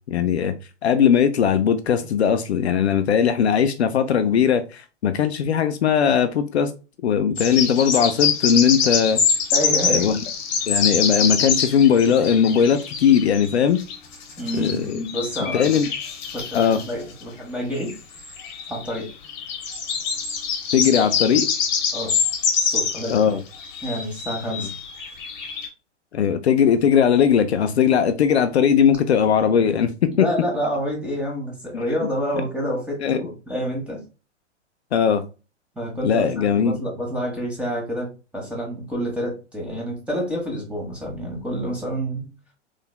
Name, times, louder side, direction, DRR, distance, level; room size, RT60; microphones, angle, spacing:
voice 1, 0.1-0.5 0.8-6.7 7.0-9.2 9.9-10.2 10.7-13.8 14.6-14.7 15.4-15.9 16.5-16.8 20.7-21.5 23.1-23.4 26.1-30.2 31.7-31.8 33.0-33.2 34.9-35.2 36.0-36.8, left 8 dB, 60° left, 0.5 m, -19 dB
sound 1, 7.4-14.7 15.0-16.9 17.9-23.2 23.5-25.7, left 6 dB, 40° left, 1.2 m, -25 dB
voice 2, 9.5-10.1 14.4-15.8 16.3-17.9 18.7-19.1 20.9-21.1 21.9-22.2 22.6-23.3 23.8-24.7 30.1-34.0 35.7-38.1 38.3-42.3, equal, 5° right, 1.3 m, -28 dB
3.6 x 3.4 x 2.2 m
figure-of-eight pair, 110°, 36 cm